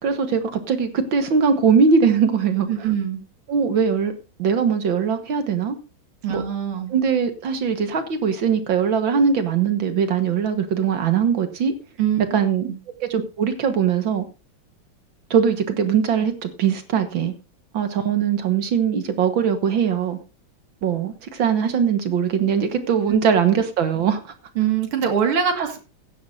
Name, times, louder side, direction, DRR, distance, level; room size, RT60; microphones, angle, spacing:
voice 1, 0.0-2.7 3.5-4.1 4.4-5.8 6.3-6.4 6.9-11.7 12.3-12.7 13.0-14.3 15.3-17.3 17.7-20.2 20.8-24.3, right 6 dB, 70° right, 8 dB, 2.1 m, -21 dB
voice 2, 2.7-3.2 6.2-6.9 12.0-12.2 12.7-12.8 24.6-25.8, right 8 dB, 85° right, 5 dB, 2.8 m, -23 dB
15.5 x 9.9 x 2.6 m, 0.31 s
omnidirectional pair, 2.3 m